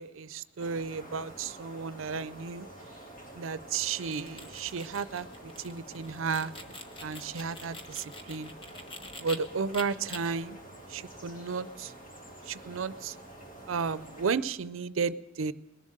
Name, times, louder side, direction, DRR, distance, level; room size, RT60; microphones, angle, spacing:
voice 1, 0.0-2.7 3.3-6.5 7.0-8.5 9.2-10.6 10.9-11.9 12.5-13.1 13.7-15.5, right 5 dB, 85° right, 16 dB, 0.5 m, -33 dB
sound 1, 0.6-14.3, right 1 dB, 45° left, 3.2 m, -48 dB
sound 2, 3.9-9.4 9.7-10.2, left 2 dB, 25° left, 1.2 m, -45 dB
21.0 x 7.4 x 7.8 m, 1.1 s
head